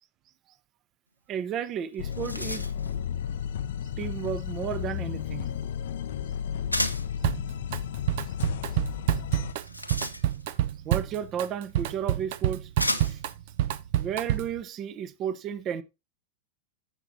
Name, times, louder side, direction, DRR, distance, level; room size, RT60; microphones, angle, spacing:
voice 1, 1.3-2.7 4.0-5.5 10.8-12.7 13.0-13.2 14.0-15.8, right 8 dB, 35° right, 0.9 m, -33 dB
sound 1, 1.6-1.7 1.9-2.9 6.7-7.2 9.4-10.6 11.7-11.8 12.8-13.3, left 1 dB, 90° left, 1.0 m, -32 dB
sound 2, 2.0-9.5, left 9 dB, 60° left, 0.6 m, -33 dB
Drum kit, 7.2-7.8 8.1-14.6, right 13 dB, 50° right, 0.6 m, -28 dB
15.0 x 6.1 x 2.7 m
figure-of-eight pair, 90°, 0 cm